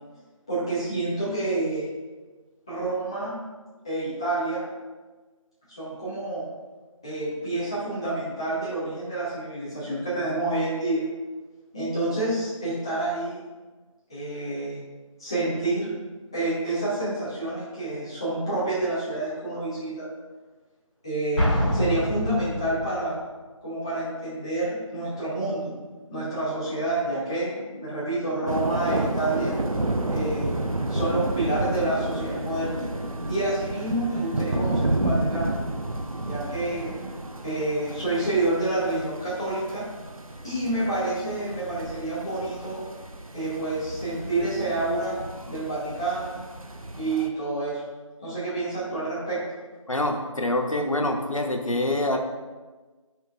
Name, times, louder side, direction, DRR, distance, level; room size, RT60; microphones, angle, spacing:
voice 1, 0.5-1.9 2.7-3.5 3.8-4.6 5.7-6.4 7.0-11.1 11.7-13.4 14.1-14.8 15.2-15.9 16.3-20.1 21.0-23.2 23.6-25.8 26.1-29.6 30.1-30.5 30.9-32.9 33.3-35.6 36.2-37.0 37.4-39.9 40.4-42.8 43.3-45.2 45.5-46.4 47.0-47.8 48.2-49.4, right 2 dB, 10° left, -10 dB, 0.8 m, -28 dB
Explosion, 21.4-23.0, equal, 20° right, 1.8 m, -25 dB
sound 1, 28.4-47.3, right 2 dB, 85° right, 0.7 m, -31 dB
voice 2, 49.9-52.2, left 1 dB, 70° left, 4 dB, 0.9 m, -25 dB
8.6 x 5.4 x 2.4 m, 1.3 s
figure-of-eight pair, 165°, 17 cm